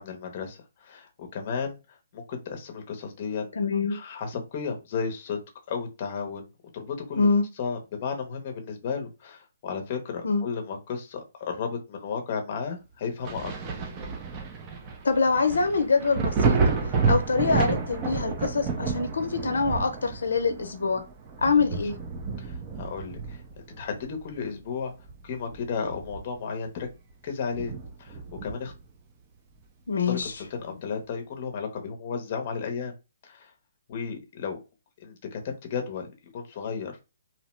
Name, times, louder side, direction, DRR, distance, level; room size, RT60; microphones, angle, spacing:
voice 1, 0.0-1.7 2.1-3.5 3.9-5.4 5.7-6.5 6.7-7.3 7.6-13.5 21.6-21.7 22.4-24.9 25.2-26.9 27.2-27.7 28.0-28.7 30.1-32.9 33.2-33.5 33.9-34.6 35.0-37.0, left 6 dB, 35° left, 0.6 m, -34 dB
voice 2, 3.5-4.0 7.2-7.4 10.2-10.4 15.0-16.6 17.1-21.0 21.4-21.9 29.9-30.3, left 4 dB, 85° left, 0.5 m, -24 dB
Thunder, 13.2-24.6 25.0-26.5 26.8-26.9 27.5-28.8 30.2-30.3, right 4 dB, 25° right, 0.5 m, -30 dB
2.8 x 2.1 x 3.0 m
hypercardioid pair, 160°, 0 cm